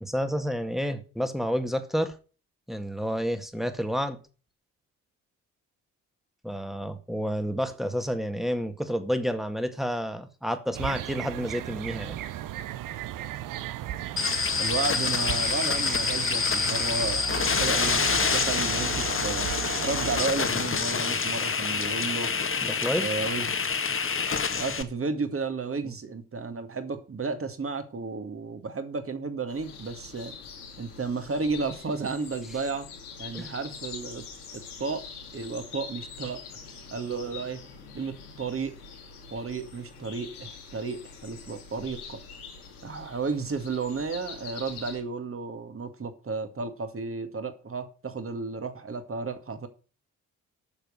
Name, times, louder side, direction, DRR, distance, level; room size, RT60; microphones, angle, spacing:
voice 1, 0.0-2.2 2.7-4.2 6.4-12.2 22.6-23.1 33.3-33.5, equal, ahead, 1.9 m, -30 dB
sound 1, 10.7-20.3, right 12 dB, 45° right, 0.8 m, -35 dB
sound 2, 14.2-24.8, left 5 dB, 30° left, 1.7 m, -27 dB
voice 2, 14.6-19.5 19.8-22.3 23.0-23.5 24.6-30.3 30.8-32.9 33.2-34.2 34.8-35.1 35.3-36.4 36.9-37.6 37.9-38.8 39.3-42.2 42.8-49.7, right 4 dB, 30° right, 2.1 m, -33 dB
sound 3, 29.5-45.0, left 5 dB, 80° left, 2.4 m, -44 dB
12.0 x 6.8 x 6.4 m
figure-of-eight pair, 40°, 44 cm